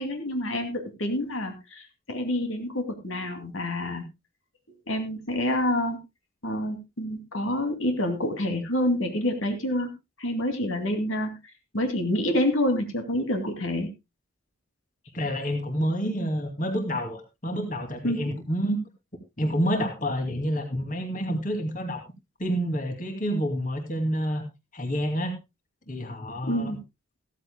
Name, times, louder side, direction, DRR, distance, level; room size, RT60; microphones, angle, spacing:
voice 1, 0.0-4.0 4.9-6.0 6.4-9.9 10.2-11.3 11.7-13.9 18.0-18.2 26.5-26.8, left 1 dB, 75° left, 5 dB, 2.5 m, -27 dB
voice 2, 15.1-18.8 19.4-22.0 22.4-24.4 24.7-25.4 25.9-26.7, equal, 40° left, 5 dB, 2.4 m, -28 dB
15.5 x 14.0 x 2.2 m, 0.23 s
head